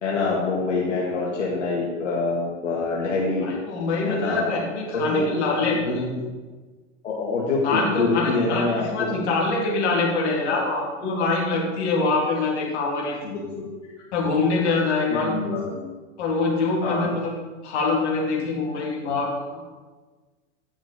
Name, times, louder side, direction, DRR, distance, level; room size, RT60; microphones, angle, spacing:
voice 1, 0.0-3.5 4.0-4.5 4.9-5.9 7.0-9.2 10.5-10.8 13.2-13.7 15.2-15.8 16.8-17.1, left 3 dB, 85° left, -5 dB, 1.9 m, -26 dB
voice 2, 3.4-6.1 7.6-13.2 14.1-15.4 16.2-17.3 17.6-19.6, left 3 dB, 65° left, -2 dB, 2.6 m, -24 dB
9.5 x 6.1 x 4.1 m, 1.3 s
hypercardioid pair, 110°, 36 cm